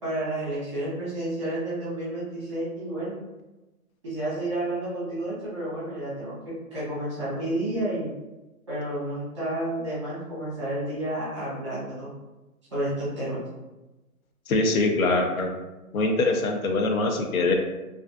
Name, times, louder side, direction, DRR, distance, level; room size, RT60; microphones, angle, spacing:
voice 1, 0.0-3.2 4.0-8.1 8.7-12.1 12.7-13.4, right 1 dB, 20° right, -10 dB, 0.8 m, -30 dB
voice 2, 14.5-15.5 15.9-17.5, left 2 dB, 70° left, 3 dB, 0.5 m, -23 dB
2.4 x 2.3 x 2.3 m, 1.1 s
hypercardioid pair, 165°, 43 cm